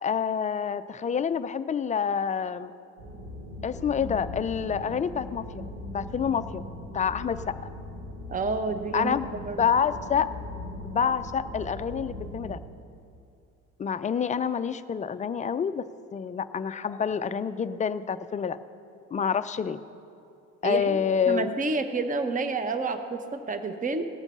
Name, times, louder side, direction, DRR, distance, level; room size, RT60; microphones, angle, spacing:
voice 1, 0.0-2.7 3.6-5.6 5.9-6.6 6.9-7.5 8.9-10.3 10.8-12.6 13.8-15.8 16.1-18.6 19.1-19.8 20.6-21.5, left 7 dB, 20° left, 12 dB, 0.4 m, -27 dB
sound 1, 3.0-12.6, left 1 dB, 70° right, 3.5 m, -40 dB
voice 2, 8.3-9.2 9.5-9.6 20.6-21.0 21.3-24.1, right 4 dB, 20° right, 9 dB, 0.9 m, -29 dB
18.0 x 7.1 x 5.4 m, 2.5 s
hypercardioid pair, 70°, 40 cm